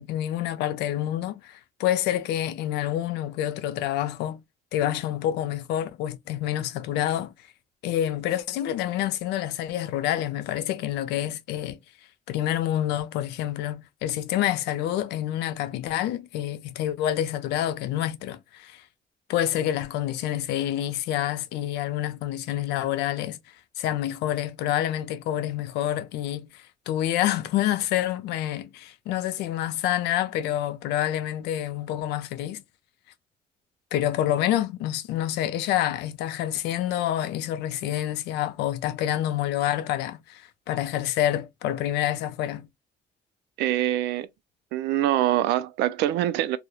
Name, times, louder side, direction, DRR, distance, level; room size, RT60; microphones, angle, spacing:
voice 1, 0.0-4.4 4.7-7.3 7.8-11.8 12.3-18.8 19.3-23.4 23.8-32.6 33.9-42.7, left 12 dB, 85° left, 0.4 m, -27 dB
voice 2, 43.6-44.3 44.7-46.6, right 13 dB, 85° right, 0.4 m, -24 dB
2.3 x 2.1 x 2.9 m
cardioid pair, 110°, 17 cm